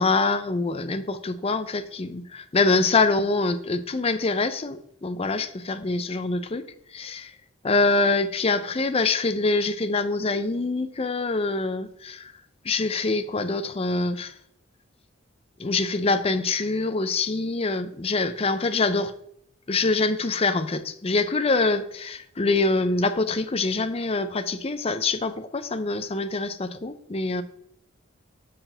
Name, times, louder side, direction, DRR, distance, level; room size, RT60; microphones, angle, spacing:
voice 1, 0.0-6.7 6.9-7.3 7.6-12.3 12.6-14.3 15.6-19.1 19.7-27.4, left 3 dB, 30° left, 10 dB, 0.5 m, -25 dB
6.6 x 6.0 x 3.9 m, 0.70 s
head